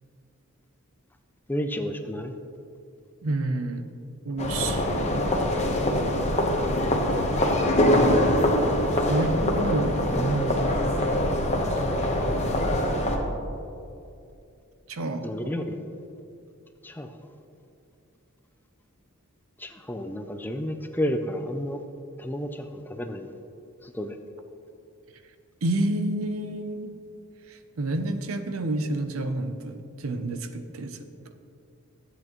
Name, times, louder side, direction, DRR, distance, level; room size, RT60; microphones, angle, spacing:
voice 1, 1.5-2.3 15.2-15.7 16.8-17.1 19.6-21.8 22.2-23.3 23.8-24.2, equal, 10° left, 6 dB, 0.4 m, -31 dB
voice 2, 3.2-3.8 4.2-5.3 9.1-10.8 14.9-15.5 25.6-26.9 27.5-31.0, right 2 dB, 75° right, 8 dB, 0.6 m, -29 dB
sound 1, 4.4-13.2, left 1 dB, 35° left, 1.0 m, -24 dB
13.0 x 8.2 x 3.0 m, 2.6 s
head